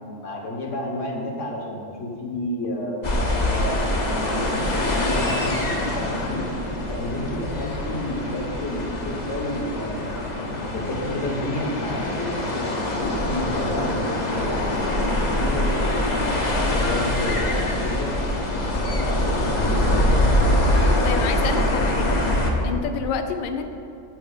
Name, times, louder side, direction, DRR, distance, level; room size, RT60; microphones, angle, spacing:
voice 1, 0.0-3.1 3.5-6.4 6.9-12.3 12.5-13.9 14.3-16.0 16.4-20.3, left 1 dB, 55° left, 0 dB, 1.6 m, -31 dB
sound 1, 3.0-22.5, left 1 dB, 35° left, 0.9 m, -24 dB
voice 2, 21.0-22.2 22.6-23.6, left 6 dB, 90° left, 6 dB, 0.4 m, -28 dB
9.6 x 4.6 x 7.2 m, 2.6 s
omnidirectional pair, 1.6 m